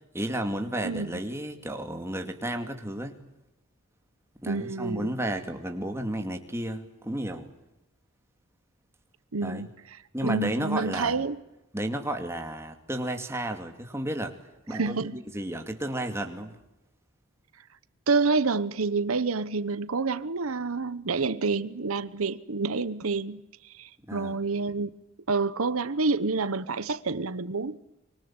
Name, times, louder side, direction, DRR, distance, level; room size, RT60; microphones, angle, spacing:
voice 1, 0.1-3.2 4.4-7.5 9.4-9.7 10.1-11.2 11.7-14.4 14.7-16.6 24.1-24.4, right 1 dB, 10° right, 2.4 m, -32 dB
voice 2, 0.8-1.2 4.5-5.1 9.3-11.4 14.7-15.2 18.1-24.9 25.3-27.8, right 4 dB, 80° right, 1.0 m, -28 dB
25.5 x 24.0 x 8.8 m
head